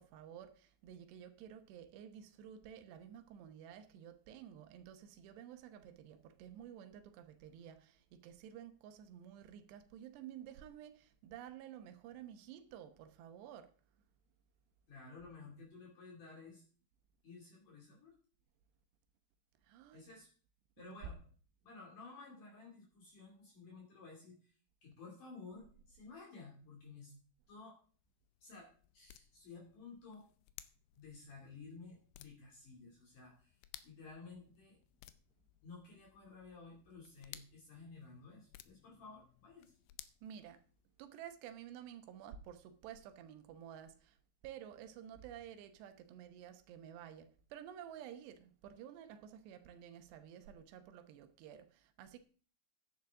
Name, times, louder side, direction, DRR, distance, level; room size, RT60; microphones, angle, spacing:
voice 1, 0.0-13.7 19.6-20.1 20.8-21.0 40.2-40.6 41.0-44.2 44.4-52.2, right 9 dB, 90° right, 3.2 m, -52 dB
voice 2, 14.9-16.6 17.2-18.1 19.9-20.3 20.8-21.2 21.6-24.5 24.8-27.1 27.5-27.8 28.4-30.3 30.9-33.6 33.8-34.8 35.6-39.7, left 4 dB, 55° left, 4.0 m, -54 dB
sound 1, 27.8-41.1, left 14 dB, 80° left, 2.4 m, -60 dB
13.5 x 10.5 x 3.7 m
omnidirectional pair, 4.8 m